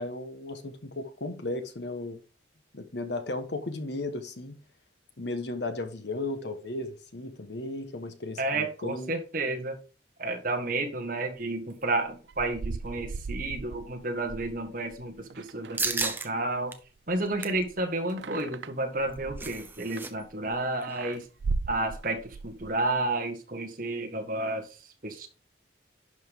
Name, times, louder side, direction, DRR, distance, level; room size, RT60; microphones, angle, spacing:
voice 1, 0.0-2.2 2.7-4.6 5.2-9.1, left 2 dB, 65° left, 1.3 m, -35 dB
voice 2, 8.4-9.8 10.2-16.7 17.1-21.3 21.7-24.8 25.0-25.3, right 2 dB, 45° right, 1.8 m, -31 dB
sound 1, 12.1-16.6 16.8-20.6 20.9-22.8, right 4 dB, 65° right, 0.4 m, -38 dB
sound 2, 15.8-16.3 16.7-16.8 17.2-17.6 18.9-20.1 20.4-20.5 20.8-21.1, right 4 dB, 10° right, 0.8 m, -33 dB
11.0 x 5.3 x 3.7 m
head